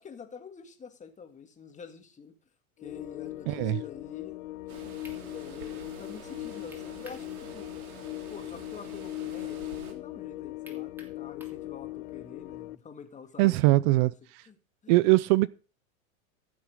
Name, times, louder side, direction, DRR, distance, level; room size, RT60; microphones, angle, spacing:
voice 1, 0.0-2.4 2.8-4.4 4.8-4.9 5.3-7.7 8.3-14.1 14.4-14.6 14.8-15.0, left 6 dB, 15° left, 2.0 m, -47 dB
sound 1, 2.8-12.8, left 17 dB, 75° left, 0.7 m, -39 dB
voice 2, 3.5-3.8 13.4-14.4 14.9-15.5, right 20 dB, 40° right, 0.5 m, -22 dB
sound 2, 4.7-9.9, right 7 dB, 80° right, 3.2 m, -48 dB
sound 3, 5.0-5.2 6.7-7.3 7.7-7.8 10.6-11.6, equal, 5° right, 2.9 m, -51 dB
14.5 x 7.4 x 4.9 m
hypercardioid pair, 120°, 42 cm